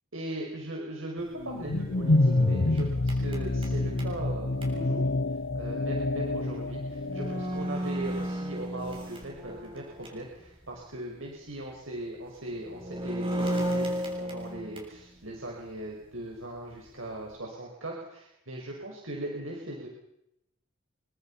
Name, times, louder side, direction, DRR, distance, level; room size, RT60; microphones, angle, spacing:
voice 1, 0.1-5.1 5.5-19.9, right 1 dB, 80° right, -1 dB, 6.0 m, -39 dB
sound 1, 1.4-7.7, left 2 dB, 75° left, 1.0 m, -27 dB
sound 2, 1.4-4.7 6.5-6.6 7.0-10.3 10.7-10.8 12.5-15.0, equal, 25° right, 7.1 m, -34 dB
27.5 x 25.0 x 5.8 m, 0.80 s
head